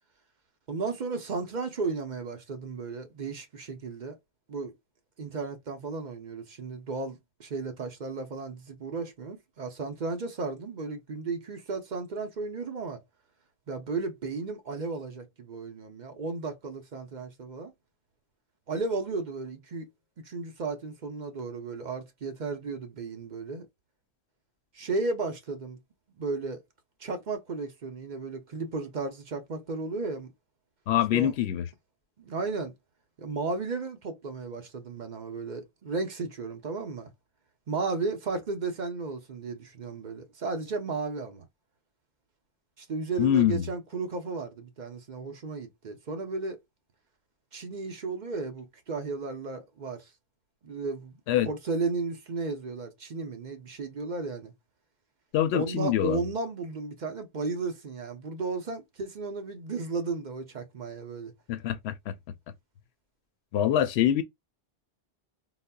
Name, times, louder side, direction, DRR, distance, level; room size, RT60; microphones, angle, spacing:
voice 1, 0.7-4.2 4.5-4.7 5.2-13.0 13.7-17.7 18.7-19.9 20.2-23.7 24.7-25.8 26.2-26.6 27.0-30.3 31.1-31.3 32.2-32.7 33.2-37.1 37.7-41.4 42.8-46.6 47.5-50.1 50.6-54.5 55.5-61.3, right 3 dB, 50° right, 0.8 m, -34 dB
voice 2, 30.9-31.6 43.2-43.7 51.3-51.5 55.3-56.2 61.5-62.2 63.5-64.2, left 11 dB, 85° left, 0.8 m, -25 dB
3.9 x 2.1 x 2.2 m
omnidirectional pair, 1.1 m